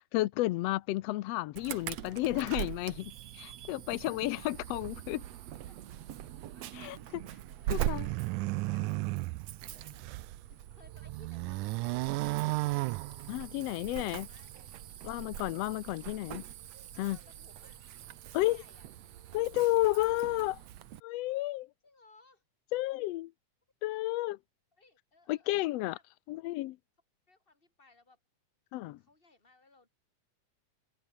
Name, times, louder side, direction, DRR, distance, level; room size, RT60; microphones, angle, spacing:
voice 1, 0.1-5.2 6.7-7.2 7.7-8.1 13.3-14.3 15.0-16.4 17.0-17.2 18.3-18.6 19.3-20.6 21.0-21.7 22.7-23.3 23.8-24.4 25.3-26.0 26.3-26.8 28.7-29.0, left 17 dB, 85° left, 1.4 m, -32 dB
Insect / Alarm, 1.6-21.0, right 12 dB, 65° right, 2.2 m, -42 dB
voice 2, 5.7-6.0 6.5-7.0 7.6-7.9 8.2-10.0 10.4-12.9 13.9-14.7 16.9-17.8 18.4-18.9 21.8-22.4 23.9-24.1 24.7-26.0 27.3-28.2 29.0-29.9, left 3 dB, 15° left, 6.1 m, -63 dB
sound 1, 7.7-10.4 10.8-13.7, right 21 dB, 80° right, 2.0 m, -34 dB
sound 2, 12.9-18.0, right 3 dB, 25° right, 4.2 m, -62 dB
omnidirectional pair, 3.6 m